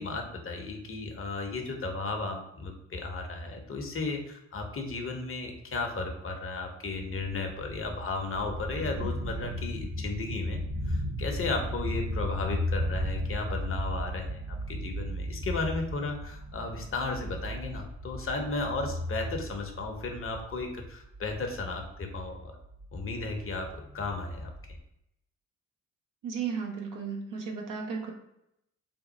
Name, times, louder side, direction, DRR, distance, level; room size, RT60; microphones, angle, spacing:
voice 1, 0.0-10.6 10.9-22.6 22.9-24.8, left 3 dB, 35° left, 3 dB, 0.9 m, -34 dB
sound 1, 7.5-24.8, equal, 20° right, 0.9 m, -36 dB
voice 2, 26.2-28.1, right 6 dB, 60° right, 1 dB, 0.9 m, -34 dB
3.6 x 2.3 x 4.0 m, 0.82 s
hypercardioid pair, 50°, 36 cm